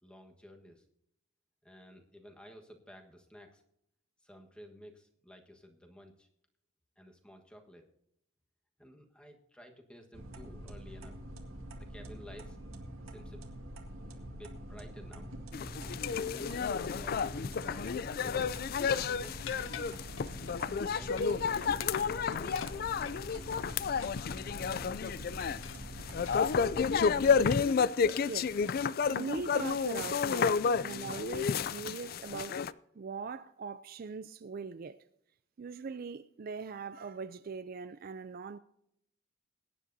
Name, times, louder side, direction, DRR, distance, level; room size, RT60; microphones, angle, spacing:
voice 1, 0.0-0.8 1.6-3.6 4.2-6.3 7.0-7.9 8.8-11.1 11.7-12.6 13.1-13.4 14.1-15.3 15.8-18.5 19.0-19.4 20.8-23.5, equal, 5° left, 1.4 m, -53 dB
sound 1, 10.1-27.5, right 1 dB, 90° right, 2.0 m, -45 dB
sound 2, 15.5-32.7, left 6 dB, 45° left, 0.3 m, -31 dB
sound 3, 19.5-20.6 21.0-21.4 21.7-23.2 24.0-25.0 25.6-27.8 28.7-29.0 29.4-29.5 30.0-30.3 30.6-30.8 31.3-31.7, left 8 dB, 70° left, 0.7 m, -50 dB
voice 2, 28.3-32.6 33.0-35.0 35.6-38.6, right 5 dB, 45° right, 0.4 m, -41 dB
21.5 x 10.0 x 2.7 m
head